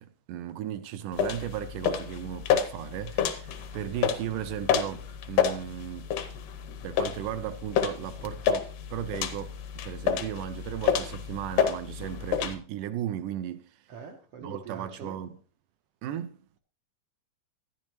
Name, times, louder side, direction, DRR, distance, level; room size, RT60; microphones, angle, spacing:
voice 1, 0.0-6.1 6.8-13.8 14.4-15.4 16.0-16.5, right 11 dB, 80° right, 2.1 m, -36 dB
sound 1, 1.1-12.5, left 8 dB, 75° left, 2.3 m, -30 dB
voice 2, 13.9-15.2, right 4 dB, 65° right, 1.5 m, -43 dB
12.5 x 10.5 x 3.0 m
omnidirectional pair, 3.7 m